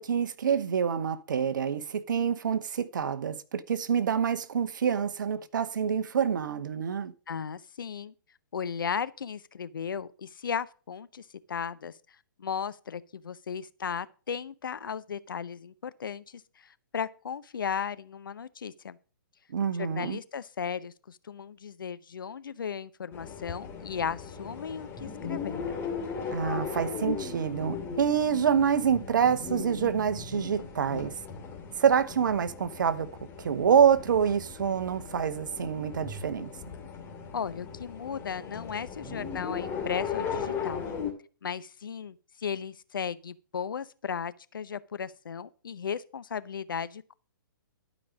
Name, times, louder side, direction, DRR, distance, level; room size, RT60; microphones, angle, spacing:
voice 1, 0.0-7.1 19.5-20.2 26.3-31.1 31.8-33.1 33.4-36.5, right 7 dB, 60° right, 1.0 m, -26 dB
voice 2, 7.3-8.1 8.5-11.9 12.4-19.0 19.8-25.8 37.3-40.8 41.4-47.1, left 7 dB, 70° left, 0.7 m, -36 dB
sound 1, 23.1-41.1, left 6 dB, 20° left, 2.3 m, -37 dB
12.0 x 5.3 x 6.2 m
figure-of-eight pair, 125°, 12 cm